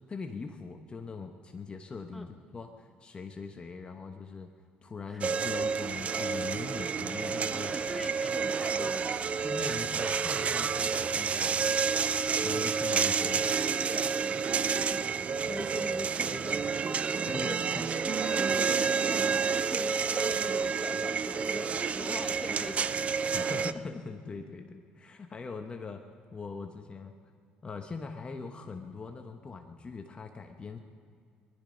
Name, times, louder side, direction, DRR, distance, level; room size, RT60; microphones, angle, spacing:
voice 1, 0.1-4.5 4.8-7.7 8.7-8.9 9.4-11.6 12.4-13.7 17.3-17.8 23.3-26.0 26.3-27.1 27.6-30.8, left 4 dB, 30° left, 4 dB, 1.1 m, -41 dB
sound 1, 5.2-23.7, right 6 dB, 40° right, 0.5 m, -29 dB
voice 2, 7.5-9.1 14.9-23.1, left 1 dB, ahead, 3 dB, 1.5 m, -42 dB
20.0 x 12.5 x 5.3 m, 2.2 s
supercardioid pair, 90°, 4 cm